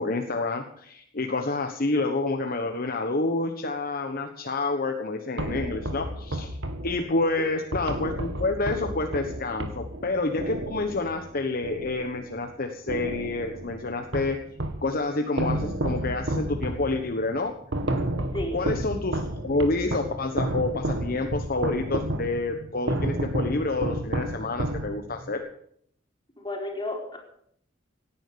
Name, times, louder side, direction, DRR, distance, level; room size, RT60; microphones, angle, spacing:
voice 1, 0.0-6.6 6.8-14.4 14.8-17.5 18.5-25.4, left 2 dB, 50° left, 5 dB, 1.2 m, -28 dB
sound 1, 5.4-12.5 12.9-14.9 15.4-25.3, right 1 dB, 70° right, 2.1 m, -31 dB
voice 2, 18.3-18.6 26.4-27.2, left 1 dB, 25° left, 0 dB, 4.5 m, -33 dB
17.5 x 10.0 x 6.9 m, 0.68 s
head